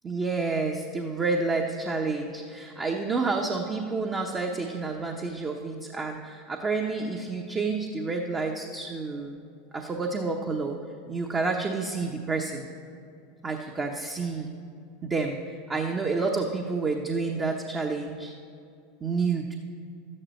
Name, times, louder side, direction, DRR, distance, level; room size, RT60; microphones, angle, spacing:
voice 1, 0.0-9.4 9.7-10.8 11.1-12.7 13.4-14.6 15.0-18.3 19.0-19.5, right 4 dB, 25° right, 2 dB, 0.9 m, -29 dB
12.5 x 9.8 x 4.4 m, 2.5 s
hypercardioid pair, 95°, 0 cm